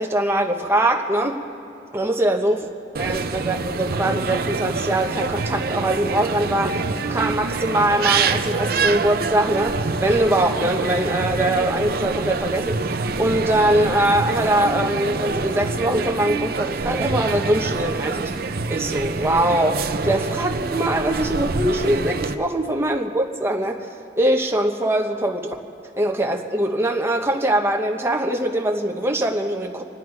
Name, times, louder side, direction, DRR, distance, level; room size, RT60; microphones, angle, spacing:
voice 1, 0.0-1.4 1.9-2.7 3.0-6.8 7.1-18.3 18.7-23.9 24.2-25.5 26.0-29.8, right 1 dB, 15° right, 2 dB, 1.1 m, -22 dB
sound 1, 2.9-22.3, right 4 dB, 55° right, 0.6 m, -26 dB
27.0 x 9.5 x 4.7 m, 2.7 s
head